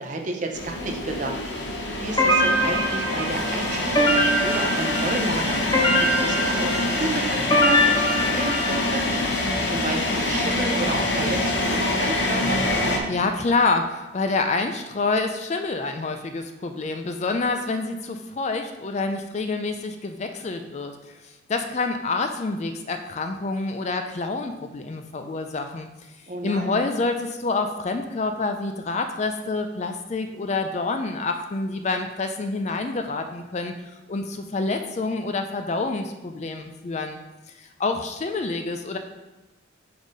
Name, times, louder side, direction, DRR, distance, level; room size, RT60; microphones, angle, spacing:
voice 1, 0.0-1.7 2.0-5.6 6.0-12.6 26.3-26.8, right 2 dB, 40° right, 3 dB, 0.7 m, -31 dB
sound 1, 0.5-13.0, left 2 dB, 60° left, 0.8 m, -25 dB
sound 2, 2.2-9.1, equal, 20° left, 0.8 m, -23 dB
voice 2, 13.1-25.9 26.4-33.7 34.1-37.2 37.5-39.0, left 3 dB, 35° left, 6 dB, 0.4 m, -27 dB
4.8 x 4.1 x 5.2 m, 1.1 s
head